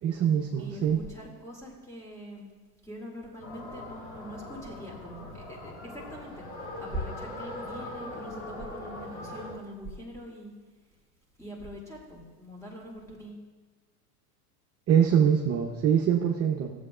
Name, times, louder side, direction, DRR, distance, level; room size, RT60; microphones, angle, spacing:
voice 1, 0.0-1.0 14.9-16.7, right 8 dB, 35° right, -1 dB, 0.9 m, -24 dB
voice 2, 0.6-2.5 2.8-6.5 6.8-10.5 11.4-13.5, equal, 5° left, -2 dB, 2.4 m, -42 dB
sound 1, 3.4-9.5, left 2 dB, 35° left, 2.9 m, -41 dB
14.0 x 7.6 x 2.5 m, 1.4 s
supercardioid pair, 110°, 45 cm